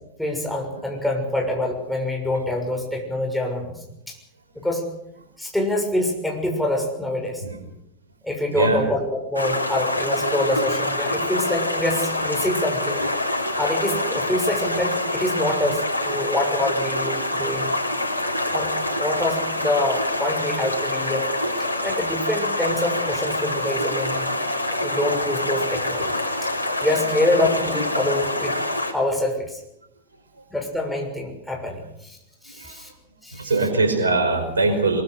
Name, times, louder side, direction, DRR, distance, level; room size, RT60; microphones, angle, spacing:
voice 1, 0.2-4.2 4.5-4.9 5.4-7.4 8.2-13.0 13.6-17.7 18.5-18.7 19.0-21.3 21.8-24.3 24.8-26.1 26.8-28.5 28.9-29.6 30.5-32.2 32.4-32.9 33.2-33.5, left 1 dB, ahead, 0 dB, 6.7 m, -25 dB
voice 2, 8.5-8.9 28.2-28.3 32.6-32.8 33.3-35.0, right 3 dB, 75° right, 5 dB, 5.3 m, -22 dB
Stream, 9.3-28.9, left 1 dB, 90° right, 3.5 m, -26 dB
23.0 x 22.5 x 6.6 m, 0.83 s
figure-of-eight pair, 90°, 0 cm